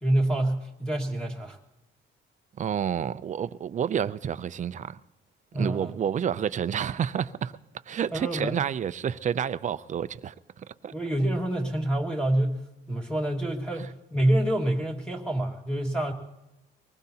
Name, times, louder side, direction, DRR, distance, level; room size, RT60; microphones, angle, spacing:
voice 1, 0.0-1.6 5.5-5.9 8.1-8.6 10.9-16.1, right 1 dB, 5° left, 1.9 m, -27 dB
voice 2, 2.6-5.0 5.5-7.5 7.9-10.9, right 8 dB, 40° right, 0.5 m, -29 dB
24.0 x 19.5 x 2.8 m
cardioid pair, 135°, 20 cm